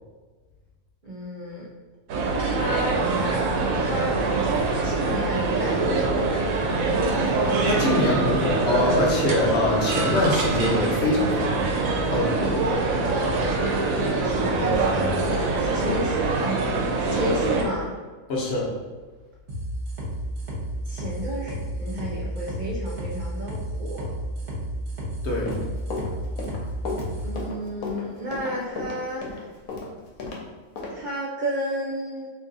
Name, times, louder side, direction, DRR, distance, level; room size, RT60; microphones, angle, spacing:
voice 1, 1.0-1.7 2.4-3.4 3.7-6.6 14.2-16.7 17.0-17.9 20.9-24.1 27.2-29.4 30.9-32.3, equal, 65° right, -4 dB, 0.4 m, -32 dB
sound 1, 2.1-17.6, right 3 dB, 85° right, 1.0 m, -24 dB
voice 2, 7.6-12.6 18.3-18.7 25.2-25.5, left 1 dB, 60° left, -2 dB, 0.9 m, -24 dB
sound 2, 19.5-27.3, right 1 dB, 45° right, 1.0 m, -32 dB
Run, 25.3-30.4 30.8-30.9, left 3 dB, 85° left, 1.1 m, -33 dB
2.7 x 2.6 x 3.8 m, 1.3 s
omnidirectional pair, 1.4 m